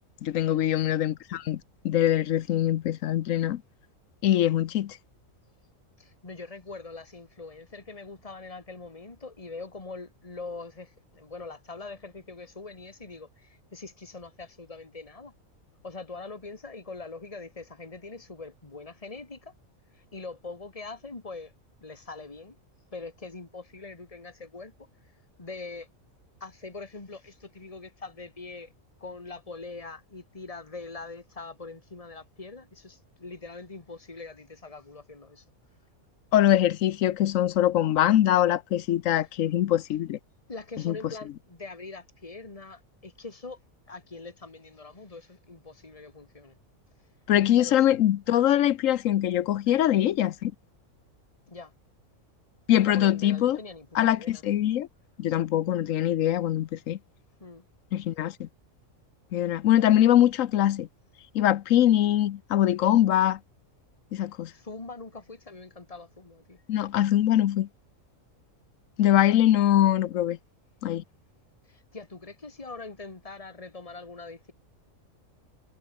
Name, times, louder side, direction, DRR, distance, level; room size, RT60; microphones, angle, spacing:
voice 1, 0.2-3.6 4.2-5.0 36.3-40.2 40.8-41.0 47.3-50.5 52.7-53.6 53.9-54.9 55.2-57.0 57.9-58.5 59.3-60.9 61.3-63.4 64.1-64.5 66.7-67.7 69.0-70.4 70.8-71.0, left 12 dB, 80° left, 1.1 m, -23 dB
voice 2, 6.0-15.3 15.8-19.5 19.9-21.5 21.8-22.6 22.9-24.7 25.4-25.9 26.4-28.7 29.0-35.4 40.5-43.6 43.9-46.6 47.6-48.0 49.7-49.8 51.5-51.7 52.8-54.4 57.4-57.6 64.5-66.6 71.6-74.5, left 3 dB, 25° left, 2.3 m, -43 dB
omnidirectional pair, 1.4 m